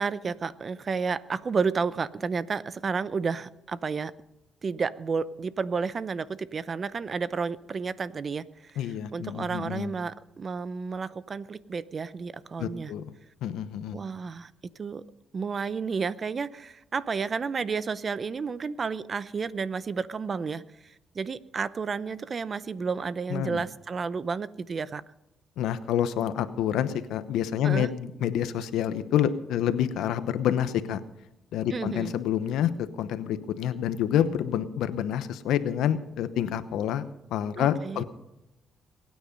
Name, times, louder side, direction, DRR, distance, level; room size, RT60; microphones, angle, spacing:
voice 1, 0.0-4.1 4.6-8.8 9.1-12.9 13.9-14.5 14.8-15.0 15.3-25.0 27.6-27.9 31.7-32.1 37.6-38.0, right 5 dB, 40° right, 16 dB, 0.7 m, -31 dB
voice 2, 8.8-9.9 12.6-13.1 13.4-14.0 23.3-23.6 25.6-31.0 31.5-37.0 37.3-38.0, left 10 dB, 85° left, 12 dB, 0.9 m, -28 dB
22.0 x 9.5 x 5.3 m, 0.91 s
cardioid pair, 90°, 0 cm